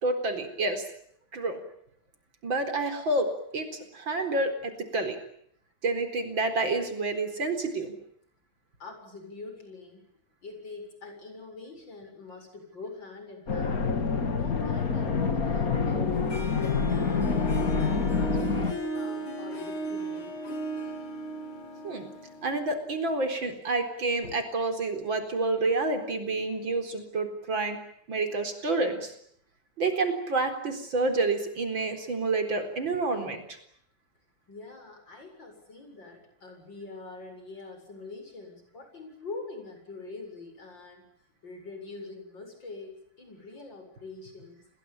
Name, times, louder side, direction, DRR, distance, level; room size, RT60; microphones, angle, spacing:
voice 1, 0.0-0.8 1.3-1.6 2.4-3.3 3.5-3.7 3.9-5.2 5.8-7.9 21.8-22.1 22.4-27.8 28.1-29.1 29.8-33.4, right 3 dB, 70° right, 7 dB, 4.8 m, -28 dB
voice 2, 8.8-10.0 10.4-13.9 14.3-20.4 24.2-24.3 34.5-41.1 41.4-44.7, left 3 dB, 65° left, 5 dB, 8.2 m, -44 dB
sound 1, 13.5-18.7, left 5 dB, 45° left, 2.7 m, -27 dB
Harp, 16.3-23.2, right 2 dB, 80° left, 4.4 m, -36 dB
29.5 x 21.5 x 8.9 m, 0.69 s
omnidirectional pair, 2.2 m